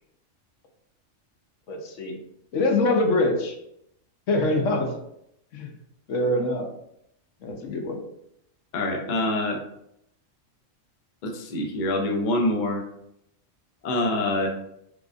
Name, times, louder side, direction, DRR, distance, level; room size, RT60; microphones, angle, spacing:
voice 1, 1.7-2.2 2.5-3.5 4.3-4.9 5.5-5.7 6.1-6.7 7.4-8.0, left 2 dB, 75° left, 3 dB, 1.0 m, -24 dB
voice 2, 8.7-9.6 11.2-12.8 13.8-14.5, left 1 dB, 50° left, 2 dB, 0.6 m, -25 dB
4.7 x 2.4 x 2.4 m, 0.76 s
omnidirectional pair, 1.3 m